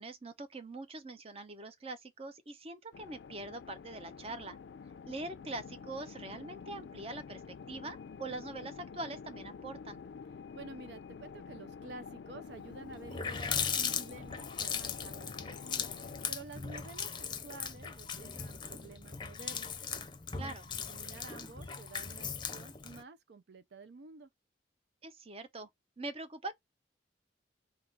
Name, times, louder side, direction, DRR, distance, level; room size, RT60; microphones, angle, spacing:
voice 1, 0.0-4.6 5.0-7.4 7.7-10.0 20.4-20.7 25.0-25.7 26.0-26.6, right 2 dB, 35° right, 0.7 m, -43 dB
sound 1, 2.9-16.3, left 5 dB, 75° left, 0.4 m, -48 dB
voice 2, 10.5-15.9 16.3-19.8 20.3-20.6 20.9-24.3, right 3 dB, 70° right, 0.5 m, -50 dB
Water tap faucet, 12.6-12.7 12.9-23.0, left 6 dB, 25° left, 0.6 m, -38 dB
3.6 x 2.3 x 4.4 m
head